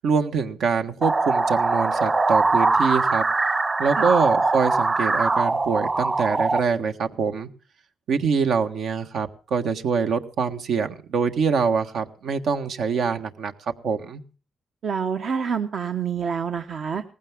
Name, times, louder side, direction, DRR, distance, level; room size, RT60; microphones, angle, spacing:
voice 1, 0.0-3.2 3.8-7.5 8.1-13.5 13.8-14.2, right 5 dB, 80° right, 6 dB, 1.4 m, -24 dB
sound 1, 1.0-6.6, right 3 dB, 30° right, 1.3 m, -22 dB
voice 2, 14.8-17.0, right 6 dB, 65° right, 6 dB, 1.0 m, -27 dB
18.5 x 15.5 x 3.6 m, 0.36 s
cardioid pair, 85°, 0 cm